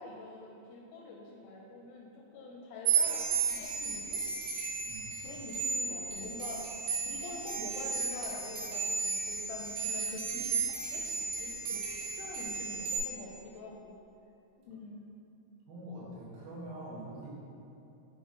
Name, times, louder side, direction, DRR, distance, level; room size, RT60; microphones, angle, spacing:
voice 1, 0.0-4.2 5.2-6.7 7.0-11.0 11.4-11.8 12.2-13.9 14.7-15.1, left 3 dB, 80° left, -1 dB, 1.9 m, -45 dB
sound 1, 2.9-13.0, right 5 dB, 70° right, 2.4 m, -34 dB
voice 2, 15.7-17.3, right 1 dB, 85° right, -6 dB, 3.0 m, -44 dB
7.1 x 3.8 x 3.7 m, 2.8 s
omnidirectional pair, 4.0 m